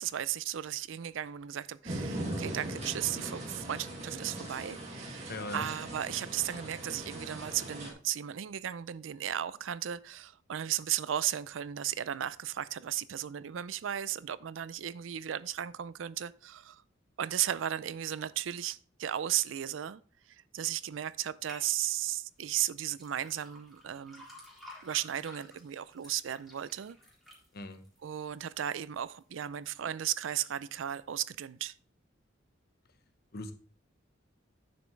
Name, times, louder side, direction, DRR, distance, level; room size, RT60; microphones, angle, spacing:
voice 1, 0.0-16.8 17.2-20.0 20.3-24.3 24.8-27.0 28.0-31.7, right 11 dB, 85° right, 0.4 m, -35 dB
sound 1, 1.8-7.9, right 1 dB, 35° right, 2.2 m, -40 dB
voice 2, 5.3-5.7 27.5-27.8 33.3-33.5, left 2 dB, 55° left, 1.0 m, -39 dB
sound 2, 21.5-21.7 22.5-28.7 29.1-29.6 30.1-30.2, left 1 dB, ahead, 3.0 m, -53 dB
9.4 x 7.1 x 3.2 m
head